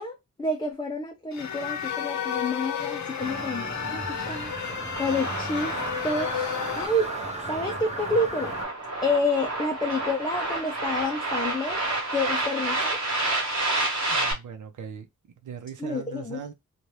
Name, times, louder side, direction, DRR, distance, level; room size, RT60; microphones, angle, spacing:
voice 1, 0.0-4.5 5.0-5.7 6.0-7.1 7.5-8.6 9.0-11.8 12.1-13.0 15.8-16.4, left 2 dB, 15° left, 0.4 m, -29 dB
sound 1, 1.3-6.9, left 8 dB, 65° left, 0.7 m, -32 dB
sound 2, 3.2-8.6, right 1 dB, 20° right, 0.8 m, -36 dB
sound 3, 5.0-14.3, right 2 dB, 60° right, 1.3 m, -30 dB
voice 2, 14.1-15.1 15.4-16.5, right 7 dB, 75° right, 0.7 m, -39 dB
2.7 x 2.3 x 3.1 m
wide cardioid pair, 175°, 30 cm